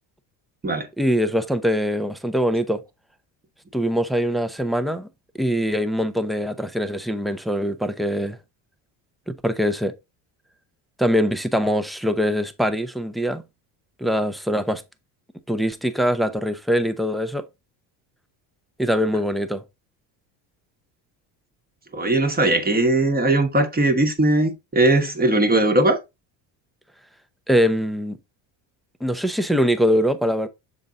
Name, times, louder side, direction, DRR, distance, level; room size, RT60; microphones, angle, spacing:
voice 1, 1.0-2.8 3.7-5.1 5.4-8.4 9.3-9.9 11.0-13.4 14.0-14.8 15.5-17.5 18.8-19.6 27.5-28.2 29.0-30.5, equal, ahead, 0.6 m, -23 dB
voice 2, 21.9-26.0, right 2 dB, 20° right, 1.1 m, -19 dB
6.8 x 3.9 x 3.7 m
cardioid pair, 105°, 45 cm